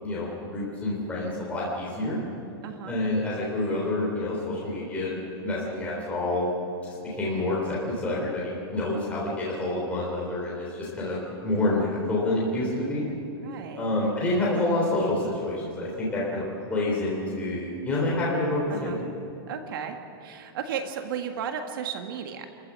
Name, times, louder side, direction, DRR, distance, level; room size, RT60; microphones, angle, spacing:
voice 1, 0.0-2.2 2.9-5.1 5.4-6.5 6.8-13.0 13.8-18.9, left 2 dB, 10° left, -5 dB, 3.5 m, -28 dB
voice 2, 2.6-2.9 13.4-13.9 18.7-19.0 19.5-22.5, right 7 dB, 55° right, 5 dB, 1.7 m, -34 dB
29.5 x 14.5 x 7.6 m, 2.7 s
supercardioid pair, 165°, 13 cm